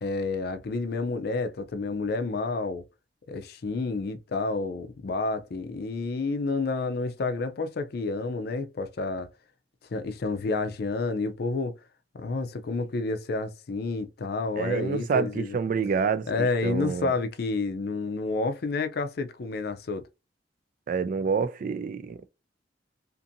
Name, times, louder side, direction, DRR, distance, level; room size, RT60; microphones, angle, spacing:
voice 1, 0.0-2.8 3.3-9.3 9.9-11.7 12.2-15.6 16.3-20.0, left 3 dB, 60° left, 0.4 m, -29 dB
voice 2, 14.6-17.1 20.9-22.3, right 5 dB, 50° right, 0.3 m, -28 dB
2.6 x 2.5 x 2.6 m
head